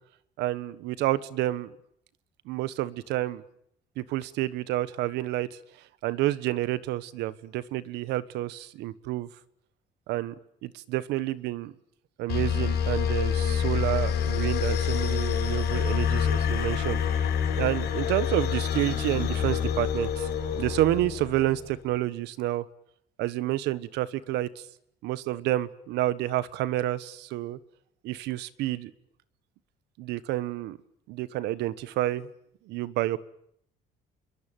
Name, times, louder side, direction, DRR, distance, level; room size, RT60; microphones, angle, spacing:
voice 1, 0.4-1.7 2.4-3.4 4.0-5.6 6.0-9.3 10.1-10.3 10.6-11.7 12.2-17.3 17.6-20.3 20.5-22.6 23.2-24.6 25.0-27.6 28.0-28.9 30.0-30.8 31.1-32.3 32.7-33.2, right 15 dB, 85° right, 16 dB, 1.4 m, -29 dB
sound 1, 12.3-21.7, left 8 dB, 75° left, 6.3 m, -27 dB
28.0 x 22.5 x 9.3 m, 0.72 s
cardioid pair, 110°, 17 cm